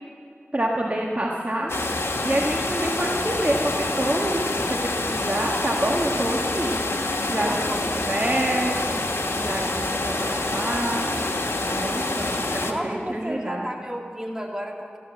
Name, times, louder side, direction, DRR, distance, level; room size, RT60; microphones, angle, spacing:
voice 1, 0.5-1.7 2.2-6.7 7.2-9.1 9.3-11.1 11.7-13.7, right 1 dB, 35° right, -2 dB, 1.6 m, -27 dB
sound 1, 1.7-12.7, left 2 dB, 80° left, 1.4 m, -27 dB
voice 2, 7.3-7.8 12.7-15.0, equal, 15° right, -1 dB, 2.6 m, -32 dB
14.5 x 13.0 x 7.5 m, 2.4 s
wide cardioid pair, 50°, 4 cm